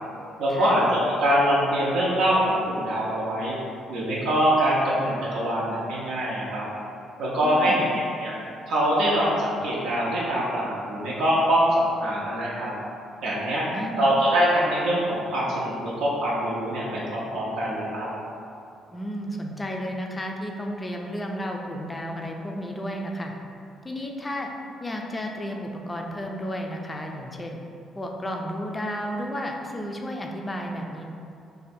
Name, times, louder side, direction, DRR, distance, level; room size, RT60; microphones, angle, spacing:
voice 1, 0.4-3.6 3.9-6.7 7.2-8.3 8.7-12.7 13.2-13.7 14.0-18.1, equal, 85° right, -6 dB, 0.5 m, -24 dB
voice 2, 7.4-7.9 13.7-14.1 18.9-23.3 23.8-24.5 24.8-27.6 28.0-31.0, equal, 20° left, 1 dB, 0.3 m, -32 dB
2.6 x 2.1 x 4.0 m, 2.7 s
cardioid pair, 110°, 0 cm